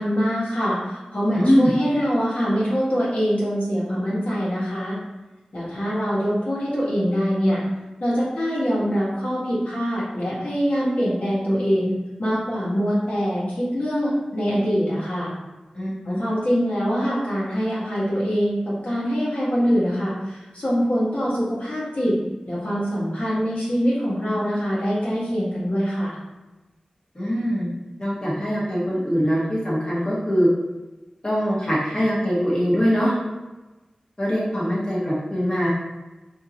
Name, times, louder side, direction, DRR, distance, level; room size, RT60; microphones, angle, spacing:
voice 1, 0.0-4.9 5.5-7.6 8.0-11.9 12.2-15.3 16.0-22.2 22.5-26.1, equal, 65° left, -8 dB, 1.4 m, -24 dB
voice 2, 1.3-1.7 15.7-16.2 27.1-27.7 28.0-30.5 31.2-33.1 34.2-35.7, equal, 30° left, -8 dB, 1.3 m, -22 dB
3.6 x 2.6 x 2.9 m, 1.1 s
cardioid pair, 40°, 2 cm